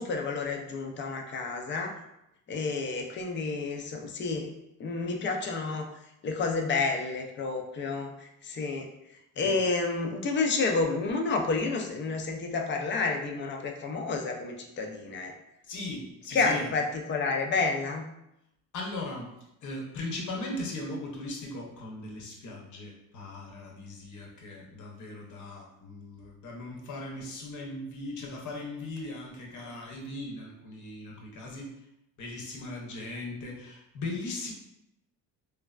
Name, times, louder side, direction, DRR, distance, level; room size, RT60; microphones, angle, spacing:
voice 1, 0.0-1.9 2.5-4.5 4.8-5.9 6.2-8.9 9.4-15.3 16.3-18.0, left 4 dB, 35° left, 3 dB, 0.4 m, -30 dB
voice 2, 15.7-16.7 18.7-19.3 19.6-31.7 32.2-34.5, left 2 dB, 55° left, -1 dB, 0.8 m, -38 dB
3.1 x 2.1 x 2.3 m, 0.85 s
cardioid pair, 115°, 34 cm